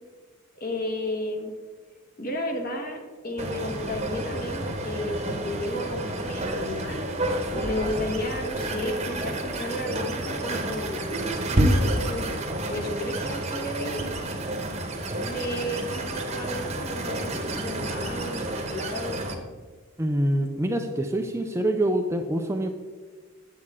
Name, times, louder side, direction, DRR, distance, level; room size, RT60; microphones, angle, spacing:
voice 1, 0.5-1.5 2.2-7.0 7.5-14.1 15.1-19.3, left 1 dB, 45° left, 3 dB, 1.2 m, -33 dB
sound 1, 3.4-19.3, right 1 dB, 30° right, 1.0 m, -29 dB
voice 2, 20.0-22.7, right 1 dB, 15° right, 4 dB, 0.4 m, -25 dB
8.5 x 7.7 x 3.6 m, 1.5 s
head